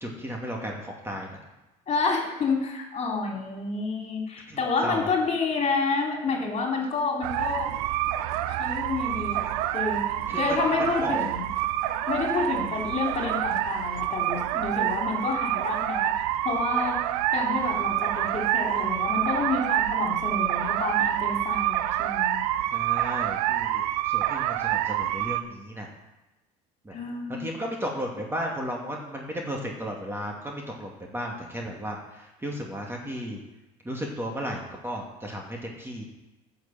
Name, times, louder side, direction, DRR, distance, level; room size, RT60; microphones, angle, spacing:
voice 1, 0.0-1.3 4.5-5.1 10.3-10.6 10.9-11.2 22.7-25.9 26.8-26.9 27.3-33.4 33.8-36.0, equal, 15° right, 0 dB, 2.4 m, -34 dB
voice 2, 1.9-7.7 8.5-10.0 10.4-11.5 12.1-16.1 16.4-17.0 17.3-22.4 26.9-27.6, left 4 dB, 40° left, 0 dB, 3.3 m, -29 dB
sound 1, 7.2-25.4, right 13 dB, 85° right, 0.6 m, -27 dB
10.5 x 6.8 x 7.6 m, 1.0 s
supercardioid pair, 90°, 18 cm